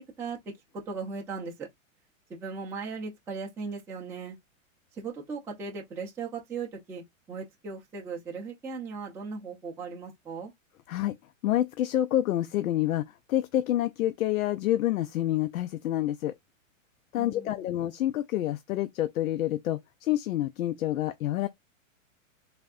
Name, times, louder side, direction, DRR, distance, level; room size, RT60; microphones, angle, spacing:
voice 1, 0.7-1.7 2.3-4.4 4.9-7.0 7.3-10.5 17.1-17.7, right 5 dB, 5° right, 0.4 m, -37 dB
voice 2, 11.4-16.3 17.1-21.5, left 13 dB, 90° left, 0.5 m, -28 dB
3.4 x 2.6 x 2.3 m
hypercardioid pair, 130°, 40 cm